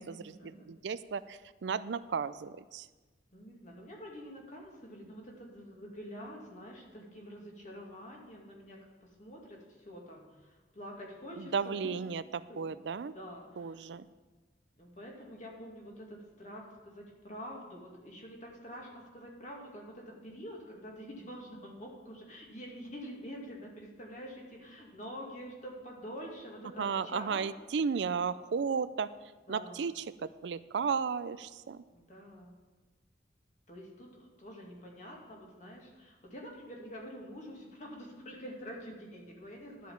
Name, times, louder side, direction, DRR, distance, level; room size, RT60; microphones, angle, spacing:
voice 1, 0.0-2.9 11.4-13.1 13.6-14.1 26.8-29.1 29.5-31.8, right 6 dB, 75° right, 15 dB, 0.4 m, -34 dB
voice 2, 3.3-11.5 12.5-12.8 13.1-13.8 14.8-27.4 29.5-29.8 31.9-32.5 33.7-39.9, equal, 45° left, -1 dB, 2.3 m, -47 dB
11.0 x 5.7 x 7.2 m, 1.2 s
head